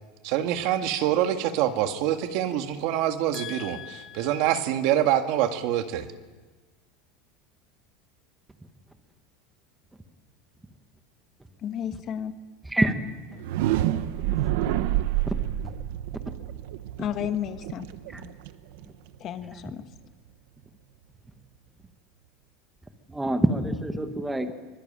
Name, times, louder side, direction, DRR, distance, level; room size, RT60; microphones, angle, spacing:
voice 1, 0.2-6.1, right 11 dB, 50° right, 7 dB, 1.8 m, -25 dB
voice 2, 3.3-4.4 11.6-12.4 17.0-17.9 19.2-19.8, left 10 dB, 30° left, 9 dB, 1.3 m, -33 dB
sound 1, 13.3-19.2, right 13 dB, 65° right, 1.2 m, -28 dB
voice 3, 23.1-24.5, right 1 dB, 5° right, 7 dB, 1.3 m, -26 dB
24.5 x 23.5 x 8.9 m, 1.3 s
supercardioid pair, 175°, 0 cm